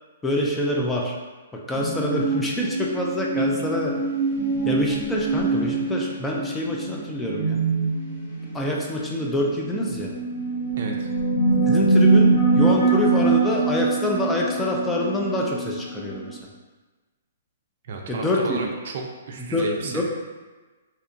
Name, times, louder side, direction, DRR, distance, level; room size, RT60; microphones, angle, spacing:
voice 1, 0.2-1.2 1.7-3.9 4.7-7.6 8.5-10.1 11.7-16.4 18.1-18.7 19.4-20.0, left 1 dB, 10° left, -2 dB, 0.3 m, -26 dB
sound 1, 1.7-16.3, right 3 dB, 40° left, 1.0 m, -23 dB
voice 2, 10.8-11.1 17.9-20.0, right 3 dB, 60° right, 1 dB, 0.4 m, -33 dB
2.8 x 2.2 x 2.5 m, 1.3 s
hypercardioid pair, 145°, 0 cm